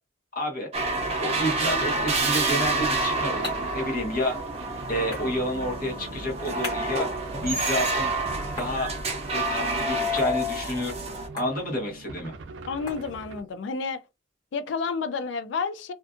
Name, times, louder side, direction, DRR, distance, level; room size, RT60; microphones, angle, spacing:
voice 1, 0.3-0.7 1.2-4.4 4.9-7.1 7.4-8.1 8.6-8.9 9.3-10.9 11.3-12.3, equal, 50° left, 1.1 m, -29 dB
sound 1, 0.7-11.3, right 2 dB, 35° right, 0.6 m, -28 dB
sound 2, 2.7-13.6, left 2 dB, 25° left, 1.4 m, -45 dB
sound 3, 3.0-13.4, right 4 dB, 80° right, 0.4 m, -43 dB
voice 2, 12.7-14.0 14.5-15.9, left 5 dB, 75° left, 0.4 m, -30 dB
2.5 x 2.4 x 2.4 m
head